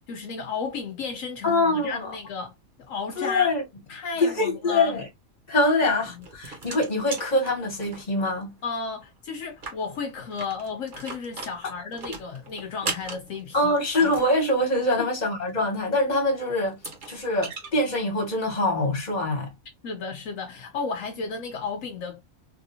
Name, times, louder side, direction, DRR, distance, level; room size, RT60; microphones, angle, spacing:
voice 1, 0.1-2.5 2.8-3.5 3.9-5.0 5.8-6.3 8.6-13.7 15.0-15.1 19.8-22.2, left 5 dB, 75° left, 1.1 m, -33 dB
voice 2, 1.4-2.1 3.2-3.6 4.2-5.1 5.5-8.5 13.5-16.8 17.1-19.5, left 2 dB, 35° left, 1.5 m, -24 dB
sound 1, 6.0-8.3 8.6-8.7 9.0-9.1 9.5-14.3 16.1-16.2 16.7-17.7, right 3 dB, 40° right, 1.2 m, -38 dB
3.3 x 2.6 x 2.7 m
omnidirectional pair, 1.4 m